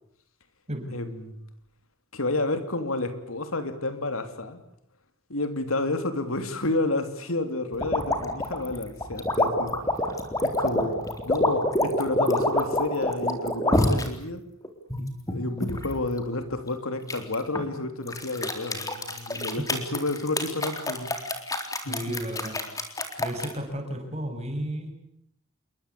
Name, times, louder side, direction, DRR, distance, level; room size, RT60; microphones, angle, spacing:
voice 1, 0.9-1.4 2.1-4.6 5.3-9.7 10.4-14.4 15.0-21.1 21.8-22.1, left 2 dB, 90° left, 9 dB, 3.3 m, -30 dB
sound 1, 7.8-14.1 14.6-15.9 17.1-17.7 18.1-23.5, left 1 dB, 15° left, 3.7 m, -26 dB
voice 2, 21.9-22.6 23.2-24.9, right 1 dB, 30° right, 4 dB, 6.9 m, -33 dB
28.5 x 23.0 x 8.6 m, 0.76 s
head